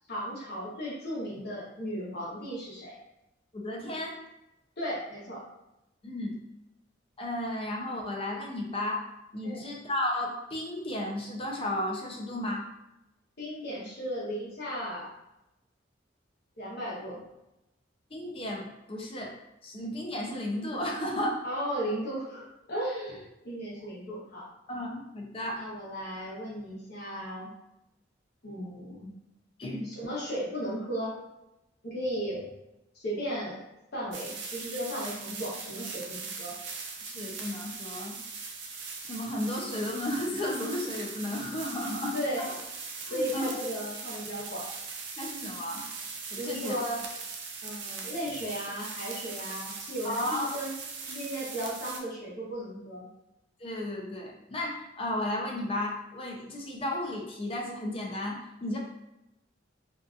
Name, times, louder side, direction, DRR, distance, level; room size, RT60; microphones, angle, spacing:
voice 1, 0.1-3.0 4.8-5.4 9.4-9.6 13.4-15.1 16.6-17.2 21.4-24.5 25.6-27.5 28.4-29.1 29.8-31.2 31.8-32.5 32.9-33.7 33.9-36.5 42.1-42.5 43.1-44.7 46.4-47.0 47.6-50.7 51.0-53.1, equal, 60° left, -5 dB, 0.9 m, -35 dB
voice 2, 3.5-4.1 6.0-6.4 7.2-9.0 9.3-12.6 18.1-19.3 19.6-21.4 24.7-25.6 29.6-29.9 37.0-38.2 39.0-42.1 43.1-43.5 45.2-45.8 46.3-46.8 50.0-50.5 53.6-58.8, left 1 dB, 30° left, -1 dB, 0.5 m, -33 dB
sound 1, 34.1-52.0, right 5 dB, 70° right, 0.5 m, -40 dB
2.6 x 2.4 x 2.4 m, 0.90 s
head